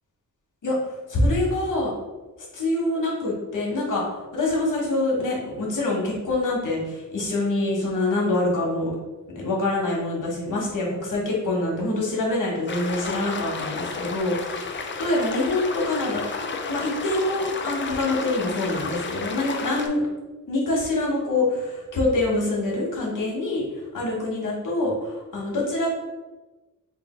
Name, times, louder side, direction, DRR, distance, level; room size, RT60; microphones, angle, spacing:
voice 1, 0.6-1.9 2.5-8.9 9.3-14.6 15.0-16.2 16.7-20.1 20.5-25.9, left 2 dB, 85° left, -3 dB, 1.2 m, -25 dB
sound 1, 12.7-19.9, left 4 dB, 40° left, 0.4 m, -32 dB
3.3 x 2.5 x 4.3 m, 1.2 s
wide cardioid pair, 135°, 31 cm